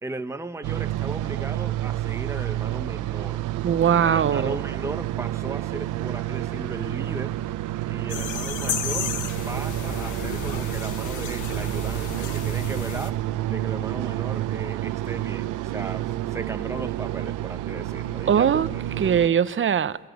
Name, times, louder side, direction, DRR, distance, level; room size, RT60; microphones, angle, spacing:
voice 1, 0.0-3.5 4.0-7.4 7.9-9.1 9.4-13.2 13.5-18.8, right 2 dB, 10° right, 1.0 m, -36 dB
sound 1, 0.6-19.3, right 14 dB, 85° right, 0.9 m, -29 dB
voice 2, 3.5-4.6 18.3-18.7 19.0-20.0, right 8 dB, 40° right, 0.9 m, -21 dB
sound 2, 8.1-13.1, left 8 dB, 80° left, 1.5 m, -33 dB
27.5 x 21.5 x 9.5 m
cardioid pair, 90°, 30 cm